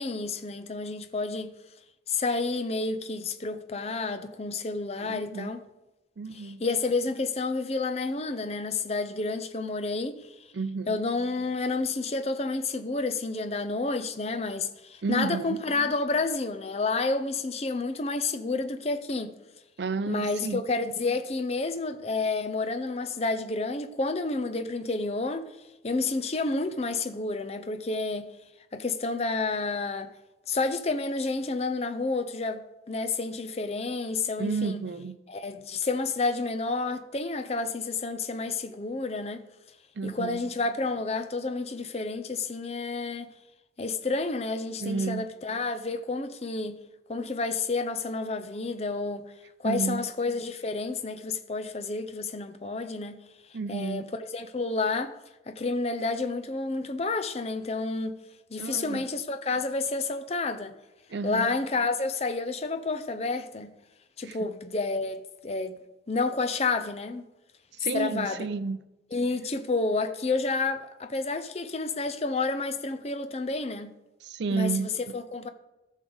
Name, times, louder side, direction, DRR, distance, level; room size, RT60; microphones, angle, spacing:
voice 1, 0.0-1.5 2.1-5.6 6.3-10.3 10.9-19.3 20.1-25.5 25.8-28.3 28.7-30.1 30.5-34.8 35.3-39.4 40.0-43.3 43.8-46.8 47.1-49.3 49.6-53.2 53.7-55.1 55.5-58.2 58.5-60.7 61.2-63.7 64.2-65.8 66.1-67.3 67.9-68.5 69.1-73.9 74.5-75.5, left 3 dB, 35° left, 0.6 m, -30 dB
voice 2, 5.0-5.5 6.2-6.6 10.5-11.0 15.0-15.6 19.8-20.6 34.4-35.2 40.0-40.4 44.8-45.2 49.6-50.0 53.5-54.1 58.6-59.0 61.1-61.6 64.2-64.4 67.8-68.8 74.2-74.9, right 4 dB, 70° right, 0.5 m, -31 dB
14.5 x 6.3 x 4.0 m
head